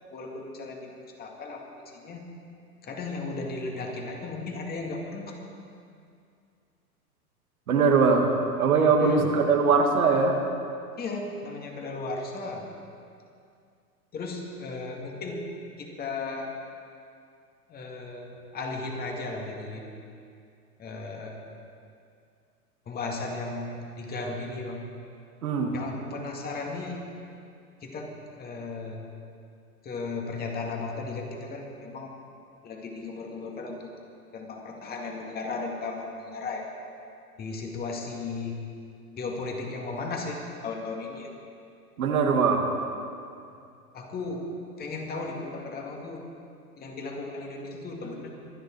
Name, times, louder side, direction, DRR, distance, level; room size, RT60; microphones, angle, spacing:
voice 1, 0.1-2.2 2.8-5.4 9.0-9.3 11.0-12.7 14.1-15.5 15.8-16.5 17.7-19.9 20.8-21.4 22.9-24.9 25.7-27.0 27.8-29.1 29.8-32.1 32.6-33.9 34.3-36.7 37.4-38.6 39.2-41.3 43.9-44.5 44.8-46.3 46.8-48.3, left 3 dB, 20° left, 0 dB, 2.2 m, -35 dB
voice 2, 7.7-8.3 8.6-10.4 25.4-25.7 42.0-42.6, right 5 dB, 65° right, 2 dB, 2.2 m, -21 dB
24.0 x 9.4 x 4.6 m, 2.4 s
hypercardioid pair, 115°, 47 cm